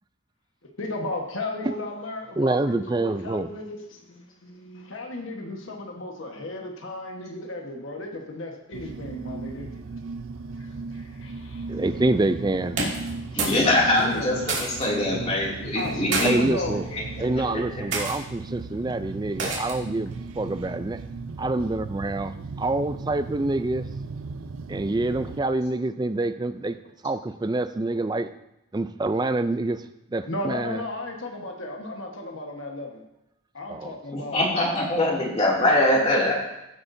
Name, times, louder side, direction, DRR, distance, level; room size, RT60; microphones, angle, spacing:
voice 1, 0.8-9.7 10.6-11.8 13.3-14.3 15.7-16.8 18.7-18.8 19.8-19.9 30.3-33.0 33.5-34.4 35.0-35.3, left 2 dB, 70° left, 1 dB, 1.3 m, -34 dB
voice 2, 2.4-3.5 11.7-12.8 16.2-16.8 17.2-21.0 21.4-23.9 24.7-26.8 27.0-28.3 28.7-29.8 30.1-30.8 33.7-33.9, right 2 dB, 20° right, 11 dB, 0.3 m, -26 dB
sound 1, 8.7-25.4, right 3 dB, 75° right, 0.5 m, -37 dB
sound 2, 12.7-13.7 13.9-14.9 15.8-16.3 17.0-17.3 17.9-18.2 19.4-19.9, right 3 dB, 60° right, 2.4 m, -29 dB
voice 3, 13.4-16.4 16.9-17.0 34.1-36.3, left 1 dB, 30° left, -4 dB, 2.6 m, -23 dB
15.5 x 8.0 x 2.7 m, 0.88 s
head